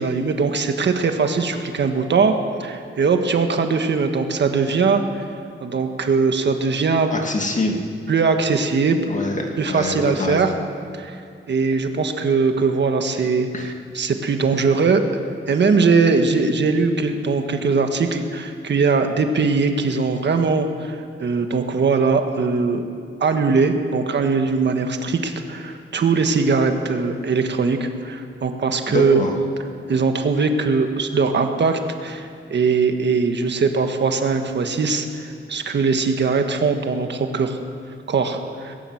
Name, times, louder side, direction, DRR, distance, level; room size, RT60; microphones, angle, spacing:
voice 1, 0.0-2.3 2.6-5.3 5.6-7.1 8.1-9.0 9.6-10.5 10.9-11.2 11.5-15.0 15.5-22.8 23.2-29.3 29.9-37.6 38.1-38.8, right 4 dB, 60° right, 5 dB, 1.6 m, -20 dB
voice 2, 7.1-7.8 9.1-10.5 13.5-13.6 28.9-29.3, left 2 dB, 35° left, 2 dB, 2.3 m, -25 dB
19.5 x 17.0 x 7.9 m, 2.3 s
wide cardioid pair, 160°, 21 cm